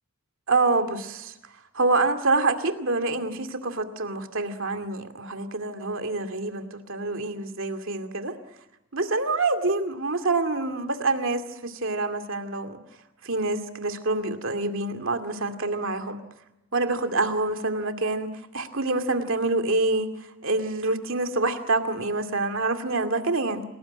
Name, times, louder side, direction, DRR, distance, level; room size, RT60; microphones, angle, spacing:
voice 1, 0.5-1.3 1.7-8.3 8.9-12.8 13.2-16.2 16.7-20.1 20.4-23.6, right 3 dB, 65° right, 6 dB, 2.4 m, -26 dB
28.0 x 19.5 x 9.8 m, 0.93 s
head